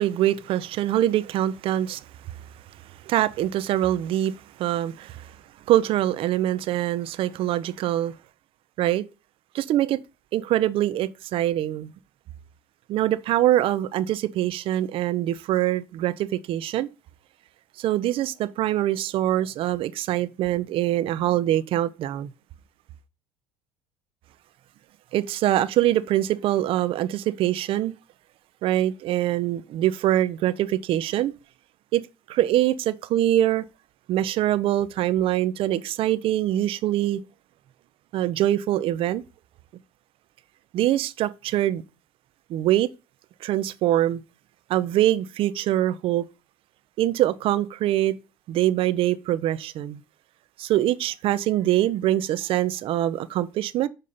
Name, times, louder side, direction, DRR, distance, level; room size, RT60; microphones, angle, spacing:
voice 1, 0.0-2.0 3.1-4.3 4.6-5.3 5.7-8.1 8.8-9.0 9.5-10.0 10.3-11.9 12.9-16.9 17.8-22.3 25.1-27.9 28.6-31.3 31.9-32.0 32.3-33.6 34.1-37.2 38.1-39.2 40.7-41.8 42.5-42.9 43.4-44.2 44.7-46.2 47.0-48.1 48.5-50.0 50.6-53.9, right 13 dB, 60° right, 0.5 m, -24 dB
6.6 x 2.7 x 5.4 m
supercardioid pair, 80°, 11 cm